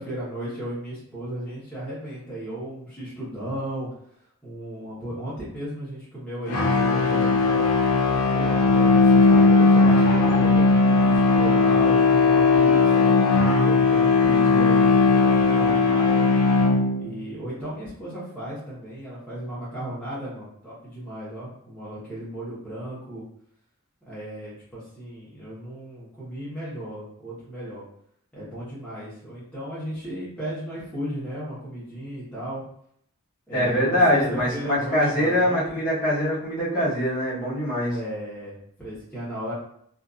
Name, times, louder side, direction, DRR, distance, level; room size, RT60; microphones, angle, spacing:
voice 1, 0.0-3.9 4.4-7.7 8.3-13.1 13.6-16.3 17.0-23.2 24.1-27.8 28.3-32.6 33.5-35.8 37.8-39.5, right 1 dB, 5° left, -11 dB, 1.1 m, -35 dB
sound 1, 6.5-17.2, left 3 dB, 85° left, 0.5 m, -18 dB
voice 2, 33.5-37.9, equal, 35° left, -9 dB, 1.1 m, -23 dB
2.7 x 2.6 x 2.4 m, 0.68 s
head